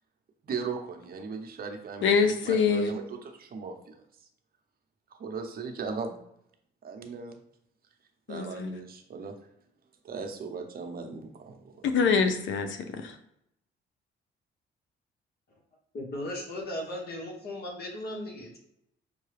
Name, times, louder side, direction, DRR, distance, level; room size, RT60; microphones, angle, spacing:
voice 1, 0.4-2.2 2.4-4.0 5.2-6.2 6.8-7.4 8.3-9.4 10.0-11.9, right 5 dB, 50° right, 4 dB, 0.8 m, -38 dB
voice 2, 2.0-2.9 8.3-8.8 11.8-13.2, left 5 dB, 70° left, 8 dB, 0.6 m, -25 dB
voice 3, 15.9-18.6, left 1 dB, 55° left, 0 dB, 1.3 m, -37 dB
5.6 x 2.2 x 3.3 m, 0.75 s
cardioid pair, 90°, 20 cm